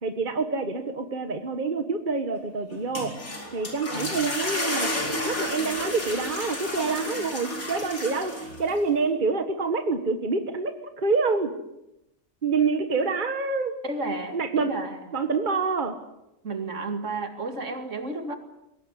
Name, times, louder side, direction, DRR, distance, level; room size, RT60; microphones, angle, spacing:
voice 1, 0.0-3.1 3.5-4.9 5.2-11.5 12.4-13.7 14.3-14.7 15.1-15.9, right 4 dB, 35° right, 7 dB, 1.5 m, -27 dB
sound 1, 2.7-8.8, left 1 dB, 85° left, 5.0 m, -31 dB
voice 2, 13.8-15.0 16.4-18.3, right 2 dB, 60° right, 7 dB, 2.7 m, -32 dB
22.5 x 17.5 x 9.7 m, 0.92 s
omnidirectional pair, 1.4 m